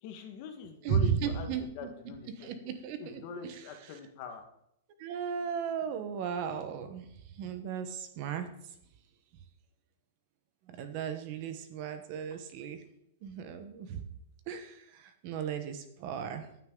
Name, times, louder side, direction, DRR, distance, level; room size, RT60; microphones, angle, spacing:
voice 1, 0.0-2.5 3.0-4.4, left 6 dB, 35° left, 5 dB, 1.6 m, -43 dB
voice 2, 0.8-1.9 2.4-4.0 5.0-8.7 10.7-12.8 13.2-14.0 14.5-16.5, right 7 dB, 35° right, 9 dB, 1.1 m, -35 dB
15.0 x 9.5 x 3.9 m, 0.78 s
supercardioid pair, 175°, 0 cm